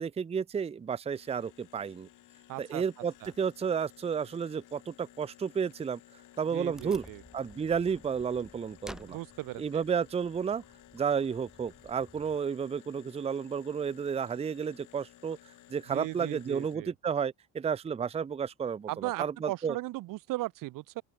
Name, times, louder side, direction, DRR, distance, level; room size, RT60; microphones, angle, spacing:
voice 1, 0.0-2.1 2.6-6.0 6.4-7.0 7.3-9.2 9.6-10.6 10.9-15.4 15.7-19.8, right 6 dB, 20° right, 0.6 m, -32 dB
sound 1, 1.1-16.8, left 14 dB, 65° left, 6.1 m, -57 dB
voice 2, 2.5-2.8 3.2-3.3 6.5-7.2 9.1-9.8 15.9-16.9 18.9-21.0, right 18 dB, 70° right, 0.9 m, -37 dB
Wood, 6.7-12.4, equal, ahead, 2.8 m, -52 dB
open air
cardioid pair, 130°, 33 cm